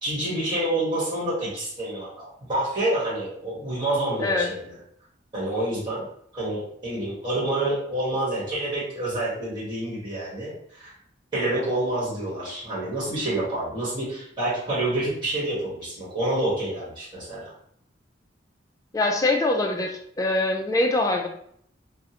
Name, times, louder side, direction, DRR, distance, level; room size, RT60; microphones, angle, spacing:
voice 1, 0.0-4.8 5.3-6.0 6.3-10.9 11.3-17.5, right 1 dB, 25° right, -7 dB, 1.2 m, -28 dB
voice 2, 18.9-21.3, left 2 dB, 20° left, 3 dB, 0.3 m, -23 dB
3.5 x 2.0 x 2.8 m, 0.67 s
head